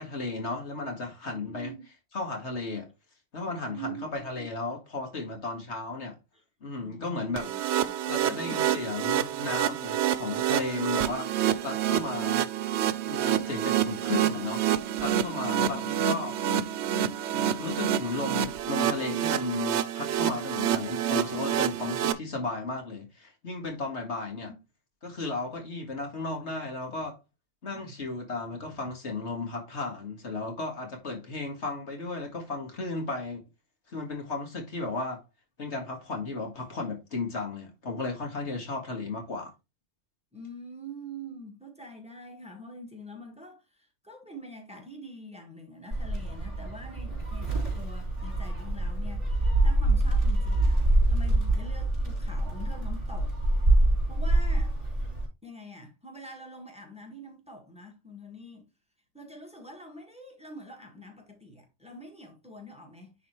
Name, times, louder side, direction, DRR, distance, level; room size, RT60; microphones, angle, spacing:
voice 1, 0.0-1.7 2.1-2.9 3.3-6.2 6.6-7.5 8.1-11.3 11.6-12.5 13.1-16.4 17.3-24.5 25.0-27.2 27.6-33.4 33.9-35.2 35.6-39.5, left 3 dB, 80° left, 2.2 m, -34 dB
voice 2, 1.2-1.9 3.6-4.5 6.3-6.4 6.8-7.9 24.3-24.6 27.7-28.0 40.3-53.4 54.1-54.7 55.4-58.7 59.1-63.1, right 1 dB, 5° right, 1.7 m, -45 dB
sound 1, 7.4-22.1, right 10 dB, 80° right, 0.9 m, -28 dB
Gull seagull, 45.9-55.3, right 1 dB, 30° right, 3.7 m, -25 dB
10.0 x 4.0 x 3.1 m
omnidirectional pair, 1.1 m